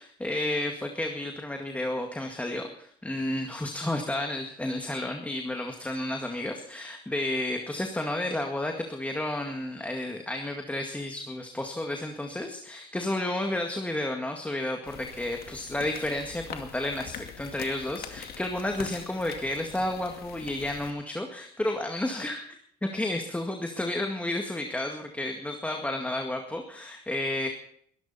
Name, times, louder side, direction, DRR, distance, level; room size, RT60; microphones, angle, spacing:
voice 1, 0.0-22.5 22.8-27.5, left 1 dB, 10° left, 3 dB, 2.0 m, -31 dB
sound 1, 14.8-20.9, left 8 dB, 65° left, 2.4 m, -44 dB
22.5 x 12.5 x 4.3 m, 0.64 s
cardioid pair, 110°, 17 cm